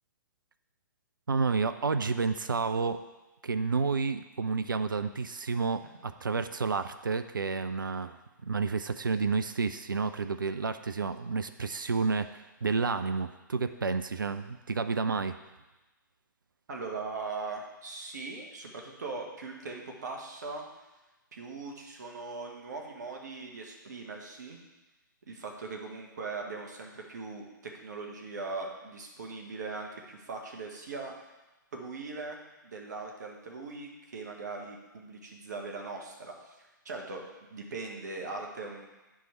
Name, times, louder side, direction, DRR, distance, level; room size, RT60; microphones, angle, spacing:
voice 1, 1.3-3.0 3.4-8.2 8.4-15.4, right 4 dB, 75° right, 10 dB, 0.4 m, -30 dB
voice 2, 16.7-20.6 21.3-24.6 25.3-31.1 31.7-32.4 32.6-37.2 37.5-38.9, right 3 dB, 55° right, 1 dB, 1.4 m, -40 dB
9.4 x 4.6 x 4.4 m, 1.1 s
figure-of-eight pair, 115°, 11 cm